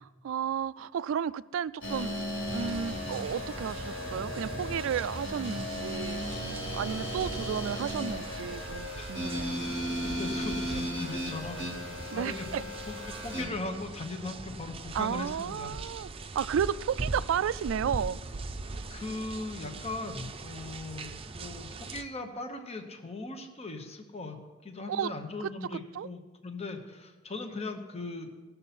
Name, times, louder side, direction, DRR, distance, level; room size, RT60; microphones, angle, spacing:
voice 1, 0.0-2.1 2.5-6.2 6.7-9.6 12.1-12.6 14.9-16.1 16.4-18.2 24.9-25.1 25.4-26.1, right 8 dB, 75° right, 17 dB, 0.3 m, -32 dB
sound 1, 1.8-13.4, equal, 70° left, 3.8 m, -36 dB
sound 2, 2.5-22.0, right 3 dB, 30° right, 0.6 m, -41 dB
voice 2, 10.0-15.7 18.9-28.4, left 3 dB, 30° left, 5 dB, 0.9 m, -39 dB
18.0 x 6.8 x 4.2 m, 1.3 s
head